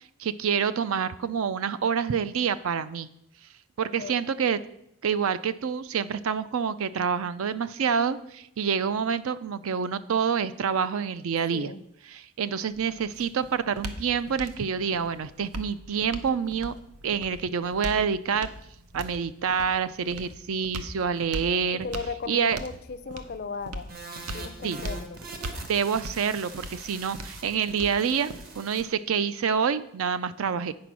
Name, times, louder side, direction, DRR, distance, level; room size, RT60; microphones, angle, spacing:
voice 1, 0.2-3.1 3.8-4.6 5.0-11.7 12.1-16.7 17.0-18.5 18.9-21.9 22.3-22.6 24.6-24.8 25.7-30.7, right 6 dB, 70° right, 14 dB, 0.4 m, -27 dB
voice 2, 3.8-4.2 11.5-11.8 21.7-23.9 24.3-25.2, left 4 dB, 45° left, 12 dB, 0.4 m, -37 dB
sound 1, 12.7-28.7, right 1 dB, 90° right, 0.8 m, -40 dB
sound 2, 23.9-28.8, right 3 dB, 40° right, 1.0 m, -43 dB
8.6 x 5.1 x 6.0 m, 0.78 s
head